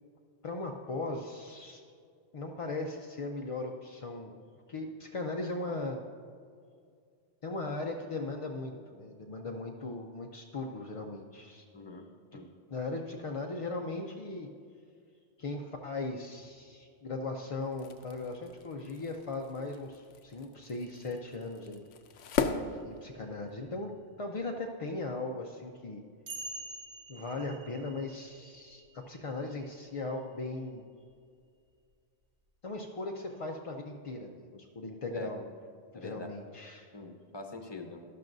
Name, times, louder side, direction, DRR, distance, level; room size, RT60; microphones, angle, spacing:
voice 1, 0.4-1.8 2.3-4.3 4.7-6.0 7.4-11.6 12.3-12.4 12.7-14.5 15.4-21.9 22.9-23.9 24.2-26.0 27.1-30.8 32.6-35.5 35.9-36.9, left 2 dB, 45° left, 2 dB, 0.4 m, -38 dB
voice 2, 11.7-12.5 35.1-35.3 35.9-36.3 36.9-38.0, left 2 dB, 25° left, 4 dB, 0.8 m, -44 dB
sound 1, 17.6-23.6, left 5 dB, 90° left, 1.0 m, -38 dB
sound 2, 20.8-22.4 23.6-23.7 25.1-25.2 26.3-30.4 31.9-32.0, right 2 dB, 75° right, 1.2 m, -48 dB
12.0 x 12.0 x 2.6 m, 2.2 s
omnidirectional pair, 1.2 m